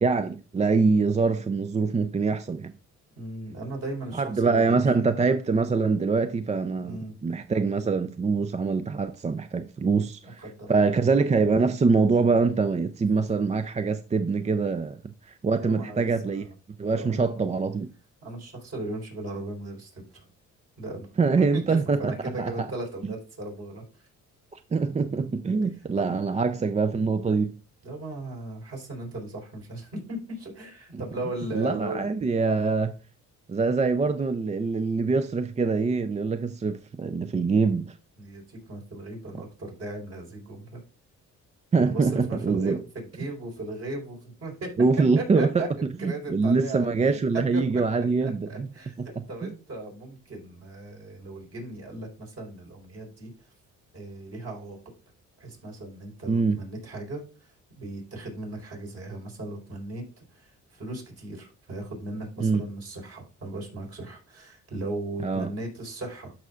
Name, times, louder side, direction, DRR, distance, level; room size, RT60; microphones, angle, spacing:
voice 1, 0.0-2.7 4.1-10.4 10.7-16.5 16.8-17.9 21.2-22.1 22.4-22.7 23.0-23.1 24.5-27.5 31.5-32.9 33.5-37.9 41.7-42.8 44.8-45.6 46.0-48.7 49.0-49.1 49.4-49.5 56.3-56.6 62.4-62.6 65.2-65.5, right 4 dB, 25° right, 0.4 m, -24 dB
voice 2, 3.2-5.1 6.8-7.2 10.4-10.8 15.5-16.5 17.0-17.3 18.2-20.2 20.8-21.1 21.4-23.8 26.0-26.2 27.8-32.0 38.2-40.8 41.8-44.7 45.2-47.2 47.5-47.7 48.2-48.9 49.3-53.3 53.9-54.8 55.4-57.2 57.8-60.0 60.3-66.3, right 2 dB, 55° right, 4.3 m, -37 dB
12.5 x 5.6 x 2.4 m
cardioid pair, 90°, 30 cm